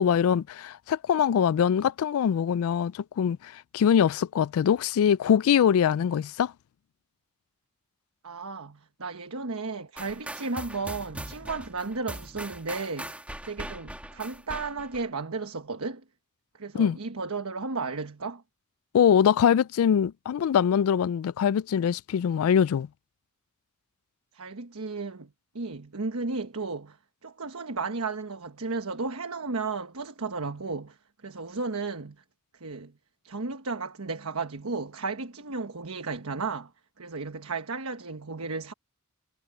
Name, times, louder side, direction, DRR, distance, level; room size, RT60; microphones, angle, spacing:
voice 1, 0.0-6.5 16.7-17.0 18.9-22.9, left 8 dB, 75° left, 0.3 m, -23 dB
voice 2, 8.2-13.2 13.4-16.0 16.5-18.4 24.3-27.0 27.2-31.0 31.2-32.2 32.5-32.9 33.2-36.7 37.0-38.7, right 4 dB, 75° right, 1.2 m, -34 dB
sound 1, 10.0-15.1, right 1 dB, 5° right, 2.1 m, -40 dB
head